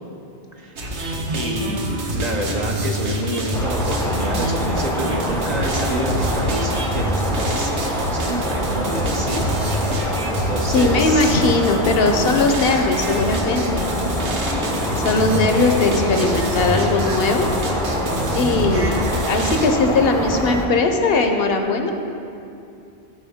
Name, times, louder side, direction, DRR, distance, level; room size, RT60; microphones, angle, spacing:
voice 1, 0.5-0.9 1.3-9.5 10.5-11.4, right 1 dB, 45° right, 1 dB, 0.7 m, -28 dB
sound 1, 0.8-19.7, equal, 90° right, 1.2 m, -26 dB
sound 2, 3.5-20.7, equal, 5° left, 0.5 m, -25 dB
voice 2, 10.7-13.9 15.0-17.5 18.3-21.9, left 3 dB, 65° left, 5 dB, 0.8 m, -19 dB
13.0 x 4.6 x 3.5 m, 2.6 s
omnidirectional pair, 1.1 m